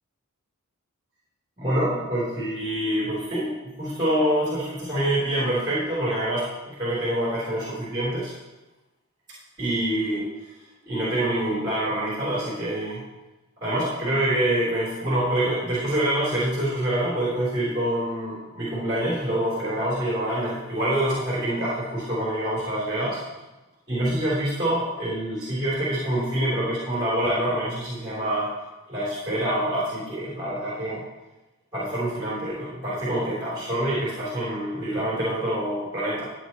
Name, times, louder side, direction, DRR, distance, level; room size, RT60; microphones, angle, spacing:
voice 1, 1.6-3.5 3.8-8.3 9.6-10.3 10.9-13.0 13.6-23.2 23.9-28.5 28.9-31.0 31.7-36.2, right 1 dB, 20° right, -9 dB, 3.6 m, -26 dB
14.0 x 8.4 x 3.1 m, 1.1 s
head